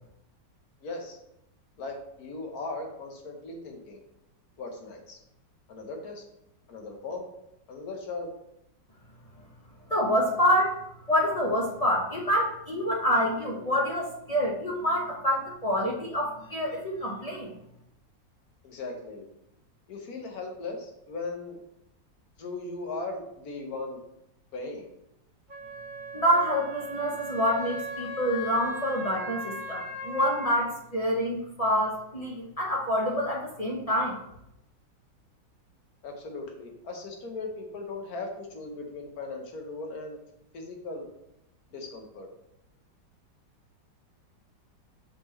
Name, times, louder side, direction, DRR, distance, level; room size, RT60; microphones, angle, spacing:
voice 1, 0.8-1.2 1.8-4.0 4.6-5.2 5.7-6.2 6.7-7.3 7.7-8.3 18.6-19.3 19.9-21.6 22.4-24.0 24.5-24.9 36.0-40.2 40.5-41.1 41.7-42.3, left 3 dB, 60° left, 3 dB, 1.5 m, -38 dB
voice 2, 9.9-10.8 11.1-17.5 26.1-34.2, equal, 35° left, -3 dB, 0.6 m, -27 dB
Wind instrument woodwind instrument, 25.5-30.6, right 1 dB, 30° right, 1.2 m, -38 dB
6.1 x 5.3 x 3.2 m, 0.80 s
omnidirectional pair, 1.9 m